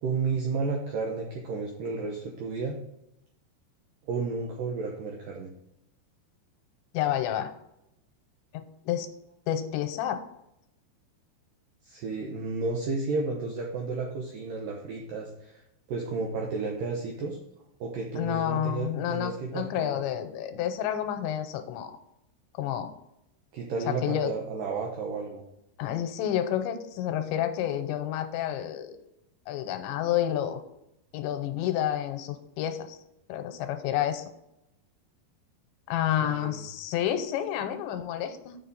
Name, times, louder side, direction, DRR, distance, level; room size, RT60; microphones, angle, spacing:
voice 1, 0.0-2.8 4.1-5.5 11.8-15.6 15.9-17.4 17.8-20.0 23.5-25.4 36.2-36.6, right 4 dB, 85° right, 0 dB, 1.9 m, -32 dB
voice 2, 6.9-7.5 8.5-9.1 9.5-10.2 18.2-21.9 22.5-22.9 23.9-24.3 25.8-29.0 29.5-30.6 31.1-33.0 33.3-34.2 35.9-38.6, left 11 dB, 90° left, 8 dB, 3.0 m, -29 dB
7.3 x 6.5 x 4.0 m, 0.83 s
omnidirectional pair, 5.2 m